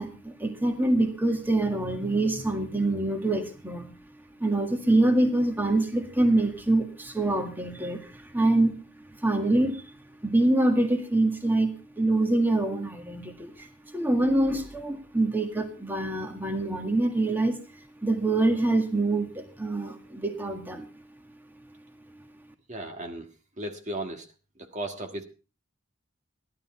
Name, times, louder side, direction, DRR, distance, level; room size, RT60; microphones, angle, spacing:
voice 1, 0.0-3.9 4.4-8.8 9.2-9.8 10.2-17.6 18.0-20.9, right 2 dB, 10° right, 5 dB, 1.8 m, -25 dB
voice 2, 22.7-23.3 23.6-24.3 24.6-25.2, right 1 dB, 35° right, 4 dB, 1.6 m, -35 dB
15.5 x 12.0 x 4.3 m, 0.33 s
head